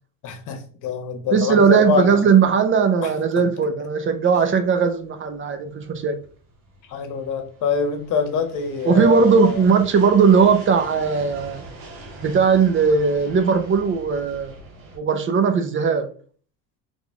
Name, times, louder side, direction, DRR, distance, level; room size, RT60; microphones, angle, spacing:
voice 1, 0.2-2.2 3.0-3.1 6.9-9.6, left 6 dB, 60° left, 1.2 m, -25 dB
voice 2, 1.3-6.2 8.8-11.6 12.2-14.5 15.0-16.1, right 5 dB, 35° right, 0.7 m, -18 dB
sound 1, 4.0-15.0, right 2 dB, 75° right, 2.1 m, -43 dB
4.0 x 3.6 x 3.5 m
cardioid pair, 115°, 35 cm